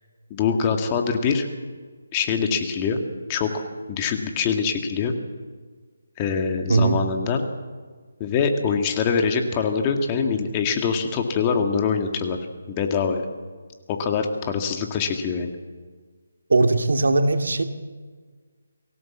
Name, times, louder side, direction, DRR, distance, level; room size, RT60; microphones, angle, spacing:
voice 1, 0.3-1.5 2.1-3.0 3.3-3.6 3.9-5.1 6.2-7.4 8.2-12.4 12.7-13.2 13.9-15.5, left 6 dB, 20° left, 4 dB, 1.9 m, -24 dB
voice 2, 6.7-7.0 16.5-17.6, right 3 dB, 75° right, 6 dB, 2.4 m, -19 dB
24.5 x 16.5 x 7.3 m, 1.5 s
hypercardioid pair, 165°, 0 cm